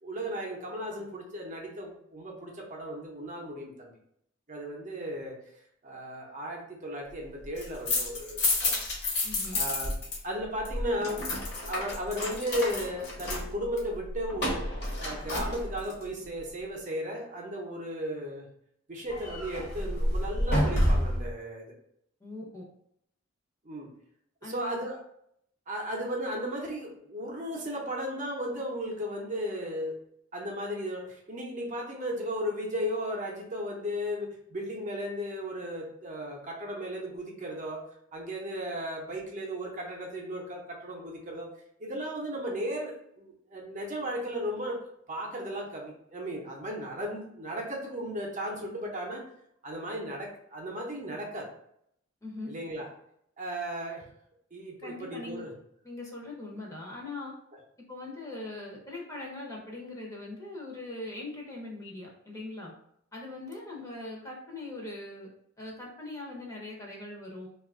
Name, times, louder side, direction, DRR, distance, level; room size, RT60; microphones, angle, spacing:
voice 1, 0.0-3.9 4.5-5.4 5.8-8.8 9.5-10.0 10.2-11.2 11.7-14.6 14.9-18.4 18.9-21.7 23.6-23.9 24.4-25.0 25.7-29.9 30.3-37.8 38.1-41.5 41.8-44.8 45.1-49.2 49.6-51.5 52.5-52.9 53.4-54.0 54.5-55.5, equal, 35° right, -1 dB, 0.7 m, -35 dB
sound 1, 7.4-10.2 10.4-16.0 19.1-21.3, left 1 dB, 55° left, 1.0 m, -30 dB
voice 2, 9.2-9.6 22.2-22.6 24.4-24.8 52.2-52.5 54.8-55.5 55.8-57.3 57.9-62.7 63.1-65.3 65.6-67.5, left 2 dB, 15° left, -3 dB, 0.7 m, -41 dB
2.7 x 2.4 x 3.6 m, 0.71 s
head